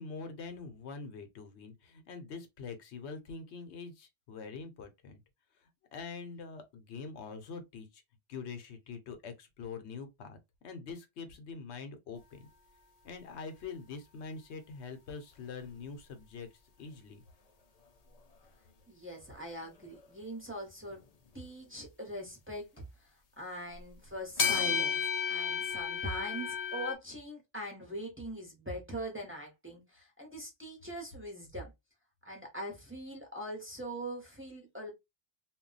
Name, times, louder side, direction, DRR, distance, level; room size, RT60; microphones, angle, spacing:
voice 1, 0.0-5.2 5.6-8.0 8.3-10.4 10.6-12.5 13.0-16.5 16.8-17.2, left 5 dB, 85° left, 1.0 m, -44 dB
sound 1, 15.6-15.7 20.9-21.0 22.8-22.9 24.4-26.9, left 7 dB, 50° left, 0.5 m, -32 dB
voice 2, 18.9-21.0 21.3-22.7 23.4-25.0 25.3-31.7 32.2-34.9, right 1 dB, 15° right, 0.7 m, -42 dB
2.3 x 2.1 x 3.8 m
omnidirectional pair, 1.1 m